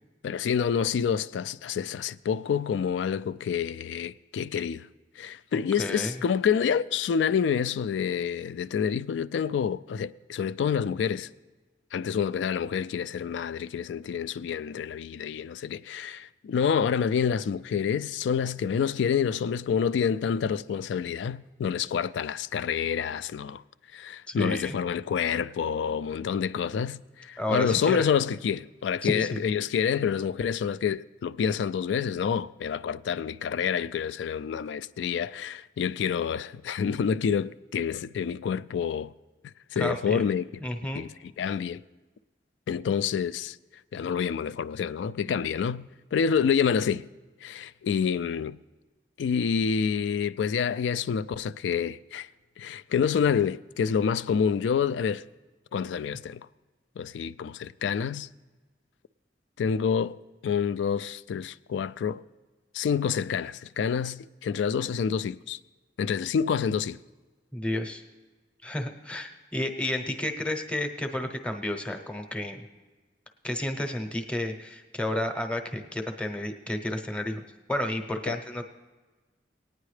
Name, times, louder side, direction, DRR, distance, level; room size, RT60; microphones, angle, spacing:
voice 1, 0.2-4.9 5.2-11.3 11.9-23.6 23.9-39.1 39.7-40.5 41.0-41.1 41.4-41.8 42.7-43.6 43.9-47.1 47.4-48.6 49.2-52.3 52.6-55.2 55.7-56.5 57.0-58.3 59.6-60.2 60.4-62.2 62.7-65.6 66.0-67.0 78.3-78.4, left 7 dB, 85° left, 0.3 m, -28 dB
voice 2, 5.8-6.1 24.3-24.8 27.4-28.1 29.0-29.4 39.8-40.2 40.6-41.0 67.5-68.0 68.6-72.6 73.4-77.4 77.7-78.6, left 1 dB, 5° left, 0.8 m, -31 dB
19.0 x 9.3 x 3.2 m
head